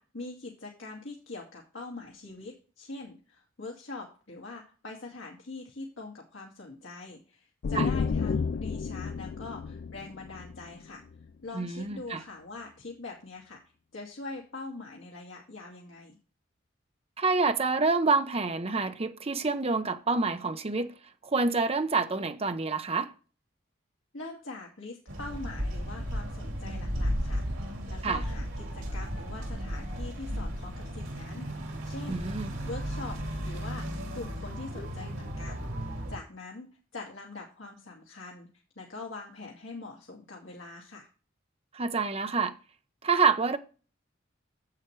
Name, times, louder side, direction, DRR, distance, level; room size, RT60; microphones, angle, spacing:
voice 1, 0.0-11.0 11.4-13.6 13.9-16.2 24.1-35.7 36.1-38.5 38.8-41.1, left 3 dB, 70° left, 2.2 m, -43 dB
sound 1, 7.6-11.2, left 5 dB, 50° left, 0.3 m, -31 dB
voice 2, 11.5-12.2 17.2-20.9 21.2-23.1 28.0-28.2 32.1-32.5 41.7-42.5 43.0-43.6, right 4 dB, 30° right, 0.8 m, -27 dB
sound 2, 25.1-36.2, equal, 90° right, 3.0 m, -34 dB
10.5 x 8.1 x 3.3 m
head